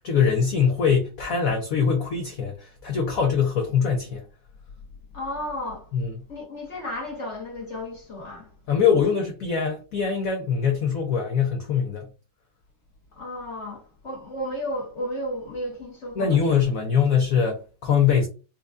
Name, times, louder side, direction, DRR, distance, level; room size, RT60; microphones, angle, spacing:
voice 1, 0.0-4.2 5.9-6.1 8.7-12.1 16.1-18.3, left 6 dB, 85° left, 0.7 m, -23 dB
voice 2, 5.1-5.9 6.3-8.5 8.8-9.0 13.2-16.6, left 1 dB, 50° left, 0.9 m, -33 dB
4.3 x 2.2 x 2.5 m
omnidirectional pair, 2.1 m